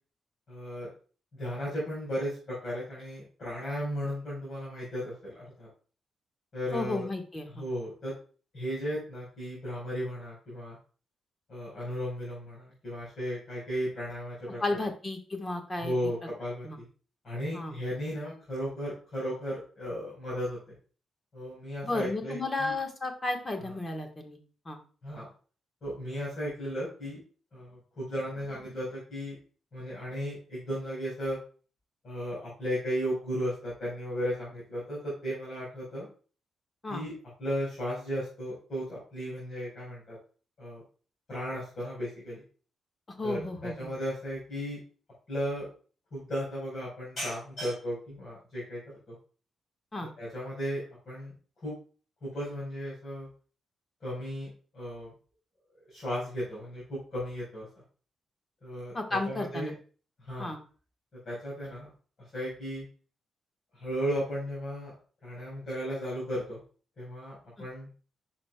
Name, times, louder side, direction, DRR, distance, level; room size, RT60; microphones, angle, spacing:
voice 1, 0.5-0.9 1.4-5.7 6.5-7.1 7.6-8.1 8.5-10.8 11.5-14.8 15.8-16.8 17.2-20.7 21.3-22.7 23.6-23.7 25.0-25.3 25.8-27.2 27.5-29.4 29.7-31.4 32.0-36.1 36.9-37.1 37.4-40.2 40.6-40.8 41.3-42.4 43.2-44.8 45.3-45.7 46.1-48.8 49.1-49.2 50.2-51.3 51.6-51.7 52.2-53.3 54.0-55.1 55.9-57.7 58.6-59.7 60.2-60.5 61.2-61.9 62.3-62.9 63.7-64.9 65.2-66.6 67.0-67.9, equal, 35° left, -7 dB, 4.2 m, -35 dB
voice 2, 6.7-7.6 14.6-16.1 16.6-16.8 17.5-17.7 21.8-24.4 24.6-24.8 36.8-37.0 43.2-43.9 49.9-50.1 58.9-59.7 60.4-60.6 67.6-67.7, left 2 dB, 20° left, 3 dB, 1.3 m, -33 dB
10.5 x 6.0 x 2.2 m, 0.39 s
wide cardioid pair, 175°, 0 cm